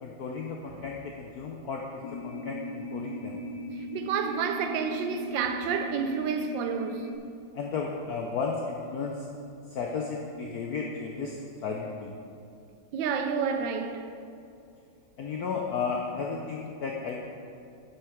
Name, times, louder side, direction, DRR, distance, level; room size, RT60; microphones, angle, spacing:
voice 1, 0.0-3.4 7.5-9.3 9.7-12.1 15.2-17.2, left 5 dB, 65° left, 1.1 m, -34 dB
sound 1, 2.0-7.2, left 1 dB, 80° left, 1.3 m, -38 dB
voice 2, 3.9-7.1 12.9-14.0, right 6 dB, 85° right, 1.4 m, -29 dB
8.0 x 7.3 x 4.8 m
omnidirectional pair, 2.0 m